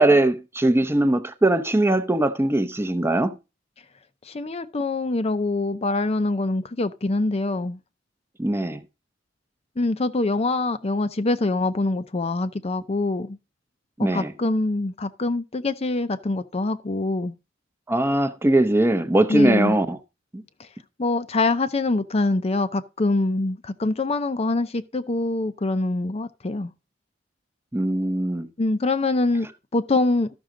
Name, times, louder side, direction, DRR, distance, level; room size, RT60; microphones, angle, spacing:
voice 1, 0.0-3.3 8.4-8.8 14.0-14.3 17.9-20.0 20.3-20.4 27.7-28.5, right 1 dB, 15° right, 0.7 m, -20 dB
voice 2, 4.3-7.8 9.8-13.4 14.0-17.3 19.3-19.8 21.0-26.7 28.6-30.3, left 2 dB, 35° left, 0.6 m, -24 dB
13.0 x 6.2 x 3.8 m
head